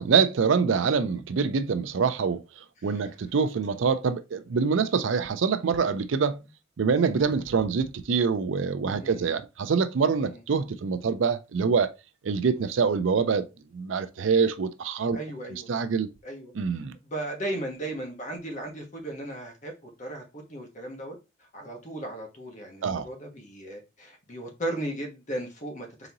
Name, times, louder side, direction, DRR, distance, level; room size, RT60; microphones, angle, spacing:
voice 1, 0.0-2.4 2.8-6.4 6.8-11.9 12.2-13.4 13.7-15.2 15.7-16.1 16.5-17.0 22.8-23.1, right 5 dB, 70° right, 0.4 m, -25 dB
voice 2, 8.9-9.4 10.2-10.4 15.1-15.7 16.2-16.5 17.0-21.1 21.5-26.1, right 1 dB, 40° left, 1.2 m, -36 dB
4.0 x 3.7 x 2.9 m
head